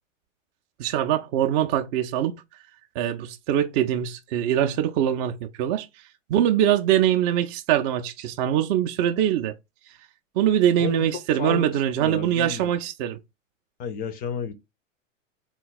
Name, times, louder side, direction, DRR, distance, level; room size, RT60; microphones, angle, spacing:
voice 1, 0.8-2.4 3.0-5.9 6.3-9.6 10.4-13.2, right 11 dB, 35° right, 0.4 m, -23 dB
voice 2, 12.0-12.7 13.8-14.5, left 7 dB, 25° left, 0.4 m, -31 dB
3.9 x 2.3 x 3.9 m
hypercardioid pair, 105°, 39 cm